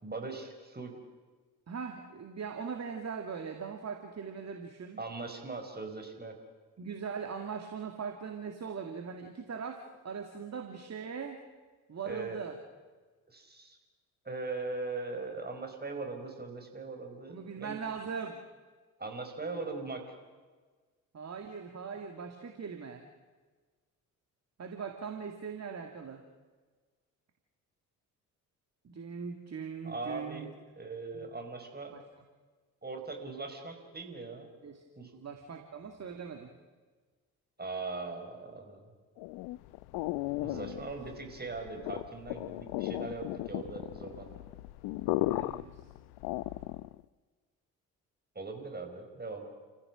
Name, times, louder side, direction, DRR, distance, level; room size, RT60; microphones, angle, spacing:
voice 1, 0.0-0.9 5.0-6.4 12.0-12.4 13.3-13.8 14.2-17.8 19.0-20.1 29.8-30.5 30.7-32.0 32.8-34.5 35.0-35.1 37.6-38.9 40.4-44.4 48.3-49.5, right 3 dB, 20° right, 4 dB, 5.2 m, -40 dB
voice 2, 1.7-5.0 6.8-11.4 11.9-12.6 17.3-18.4 21.1-23.0 24.6-26.2 28.8-30.5 31.2-31.3 31.9-32.0 34.6-34.8 35.1-36.5 40.4-41.0 45.3-45.9, right 6 dB, 35° right, 5 dB, 2.3 m, -40 dB
sound 1, 39.2-47.0, left 18 dB, 60° left, 0.7 m, -36 dB
29.5 x 15.5 x 6.3 m, 1.4 s
figure-of-eight pair, 45°, 43 cm